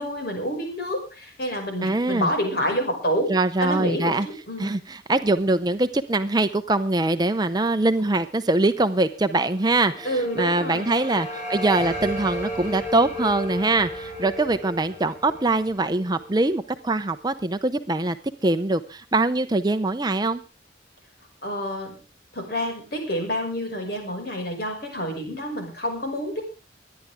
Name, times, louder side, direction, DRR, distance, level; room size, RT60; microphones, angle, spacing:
voice 1, 0.0-3.3 3.6-4.2 4.5-4.8 10.0-11.0 21.4-22.0 22.3-26.4, equal, 55° left, 3 dB, 5.7 m, -28 dB
voice 2, 1.8-2.3 3.3-4.3 4.6-18.2 18.4-20.4, right 2 dB, 20° right, 11 dB, 0.6 m, -23 dB
sound 1, 9.5-16.6, equal, 40° left, 5.2 m, -34 dB
23.5 x 10.5 x 3.5 m, 0.33 s
head